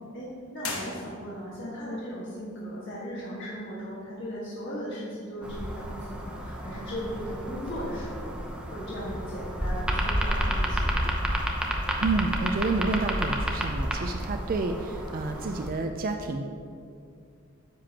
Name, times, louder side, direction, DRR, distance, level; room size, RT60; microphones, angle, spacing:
voice 1, 0.1-11.5, equal, 60° left, -8 dB, 1.6 m, -37 dB
sound 1, 0.6-1.6, left 3 dB, 80° left, 1.2 m, -37 dB
sound 2, 5.4-15.7, equal, 5° right, 0.7 m, -30 dB
voice 2, 12.0-16.4, right 3 dB, 45° right, 5 dB, 0.4 m, -29 dB
9.9 x 7.6 x 2.9 m, 2.3 s
head